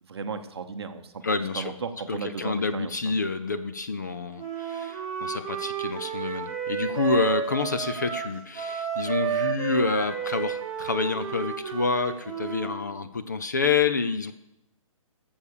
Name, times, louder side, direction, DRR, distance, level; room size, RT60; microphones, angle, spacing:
voice 1, 0.0-3.2, right 5 dB, 50° right, 8 dB, 1.0 m, -35 dB
voice 2, 1.2-1.7 2.1-14.3, left 4 dB, 30° left, 11 dB, 0.4 m, -28 dB
Wind instrument woodwind instrument, 4.4-12.8, right 8 dB, 20° right, 2.2 m, -31 dB
12.0 x 7.2 x 6.5 m, 0.83 s
hypercardioid pair, 180°, 18 cm